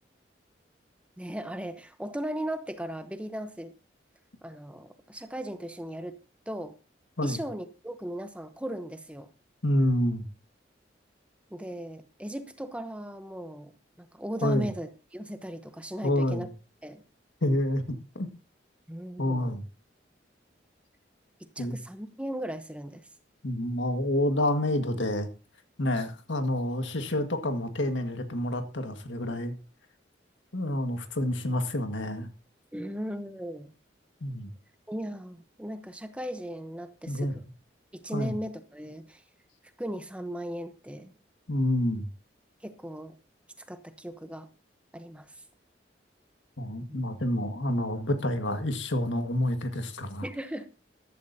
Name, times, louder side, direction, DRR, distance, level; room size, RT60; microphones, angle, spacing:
voice 1, 1.2-3.7 4.4-6.2 6.5-6.7 7.2-9.3 11.5-13.7 14.0-16.5 16.8-17.0 18.9-19.6 21.6-23.1 32.7-33.7 34.9-37.4 37.9-39.2 39.8-41.1 42.6-43.2 43.7-44.5 44.9-45.4 46.9-47.0 50.2-50.7, right 1 dB, 5° right, 0.9 m, -37 dB
voice 2, 9.6-10.3 14.4-14.7 16.0-16.5 17.4-18.3 19.2-19.6 21.6-21.8 23.4-25.3 25.8-29.5 30.5-32.3 34.2-34.5 37.1-37.3 38.1-38.3 41.5-42.1 46.6-50.2, left 1 dB, 85° left, 1.8 m, -28 dB
14.5 x 12.0 x 2.8 m
head